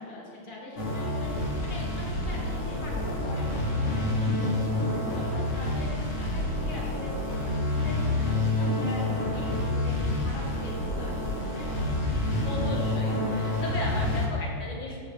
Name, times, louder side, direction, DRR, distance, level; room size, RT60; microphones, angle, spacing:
voice 1, 0.0-12.0, left 1 dB, 25° left, -5 dB, 2.3 m, -42 dB
sound 1, 0.8-14.3, left 2 dB, 40° left, 1.7 m, -28 dB
voice 2, 12.4-15.1, left 2 dB, 75° left, -3 dB, 2.3 m, -36 dB
13.5 x 9.0 x 3.3 m, 2.2 s
omnidirectional pair, 2.2 m